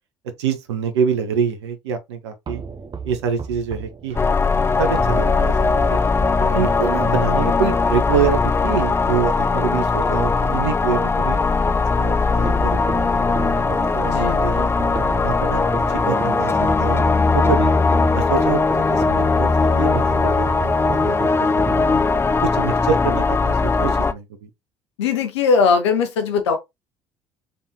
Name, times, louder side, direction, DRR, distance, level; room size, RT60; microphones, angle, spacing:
voice 1, 0.4-2.6 3.0-4.3 4.8-6.0 6.4-11.4 11.9-12.8 13.3-14.7 15.2-17.7 18.1-21.9 22.5-24.5, right 6 dB, 75° right, 0.7 m, -26 dB
sound 1, 2.5-9.6 10.0-12.0 12.4-22.4, right 5 dB, 30° right, 0.8 m, -35 dB
sound 2, 4.1-23.1, right 6 dB, 55° right, 1.1 m, -40 dB
sound 3, 4.2-24.1, left 4 dB, 15° left, 0.5 m, -19 dB
voice 2, 14.0-14.5 21.9-22.1 25.0-26.6, left 5 dB, 75° left, 0.9 m, -20 dB
3.9 x 3.5 x 2.8 m
figure-of-eight pair, 55°, 15 cm